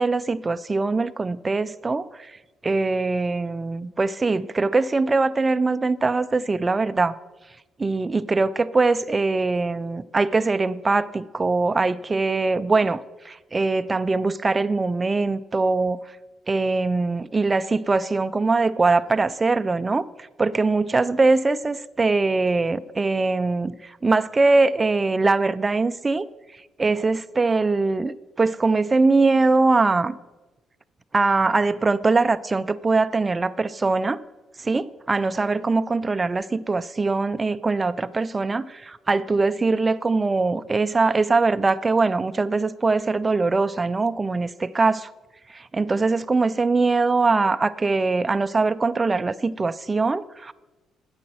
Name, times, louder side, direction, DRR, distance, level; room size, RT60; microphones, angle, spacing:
voice 1, 0.0-2.4 2.6-7.2 7.8-16.0 16.5-26.3 26.8-30.2 31.1-34.2 34.6-45.1 45.5-50.5, right 3 dB, 25° right, 0.4 m, -22 dB
8.4 x 7.8 x 6.3 m
supercardioid pair, 70°, 0 cm